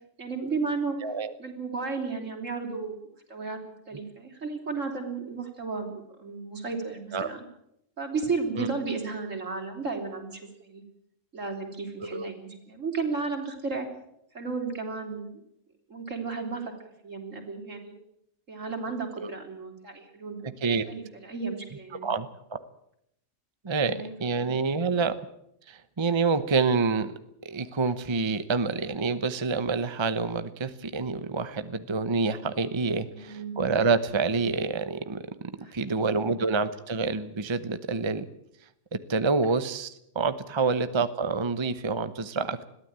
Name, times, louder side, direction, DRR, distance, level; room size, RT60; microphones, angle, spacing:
voice 1, 0.2-1.0 1.4-3.0 3.3-3.6 3.9-5.9 6.2-7.4 8.0-10.8 11.3-13.9 14.3-15.4 15.9-18.0 18.5-20.5 20.9-22.1 23.9-24.5 33.1-33.6 35.6-36.4 39.4-39.5, right 4 dB, 75° right, 3 dB, 4.0 m, -34 dB
voice 2, 12.0-12.3 19.2-19.3 20.6-20.9 22.0-22.6 23.6-25.1 25.7-27.1 27.4-38.3 38.9-42.7, right 4 dB, 25° right, 12 dB, 0.9 m, -27 dB
21.5 x 14.5 x 8.8 m, 0.77 s
omnidirectional pair, 1.3 m